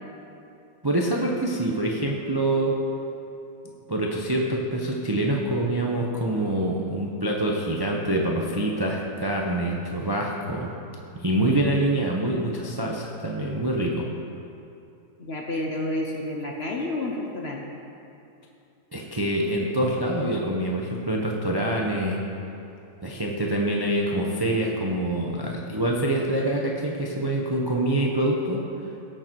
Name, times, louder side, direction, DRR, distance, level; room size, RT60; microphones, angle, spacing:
voice 1, 0.8-2.8 3.9-10.7 11.1-14.1 18.9-22.2 23.0-28.6, right 1 dB, 25° right, -1 dB, 0.5 m, -25 dB
voice 2, 15.2-17.6, left 1 dB, 45° left, 1 dB, 0.9 m, -30 dB
17.0 x 6.8 x 4.5 m, 2.8 s
omnidirectional pair, 1.9 m